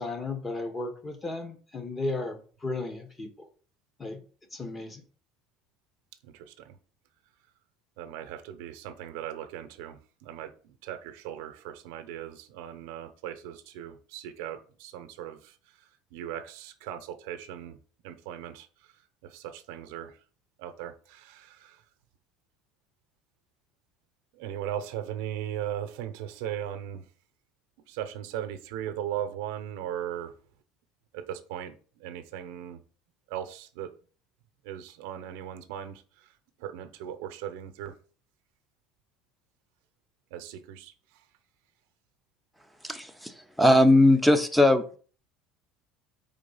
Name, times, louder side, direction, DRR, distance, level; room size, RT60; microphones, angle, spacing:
voice 1, 0.0-3.5 4.0-4.2 4.5-5.0, left 3 dB, 20° left, 6 dB, 1.0 m, -35 dB
voice 2, 6.2-6.8 8.0-15.6 16.1-17.8 18.0-18.9 19.2-20.2 20.6-21.8 24.3-27.1 27.9-30.3 31.1-32.8 33.3-33.9 34.6-36.3 36.6-37.9 40.3-40.9, right 10 dB, 80° right, 8 dB, 0.7 m, -38 dB
voice 3, 42.8-45.0, left 1 dB, ahead, 9 dB, 0.6 m, -20 dB
4.7 x 3.7 x 5.4 m, 0.41 s
cardioid pair, 145°, 0 cm